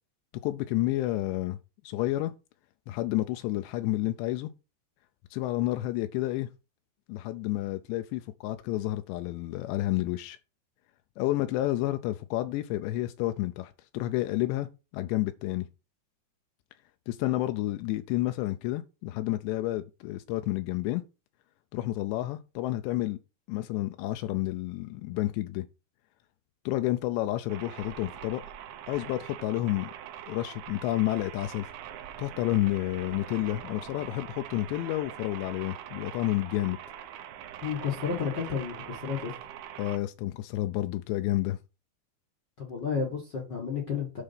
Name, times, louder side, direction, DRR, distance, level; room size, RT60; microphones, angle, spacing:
voice 1, 0.4-1.6 1.8-2.3 2.9-4.5 5.3-6.5 7.1-10.4 11.2-14.7 14.9-15.7 17.1-21.0 21.7-23.2 23.5-25.7 26.7-28.4 28.9-29.9 30.3-31.7 32.2-36.8 39.8-41.6, left 16 dB, 85° left, 2.8 m, -30 dB
sound 1, 27.5-40.0, right 10 dB, 75° right, 2.3 m, -43 dB
voice 2, 37.6-39.3 42.6-44.2, left 6 dB, 65° left, 1.0 m, -31 dB
9.9 x 4.0 x 5.6 m
omnidirectional pair, 5.0 m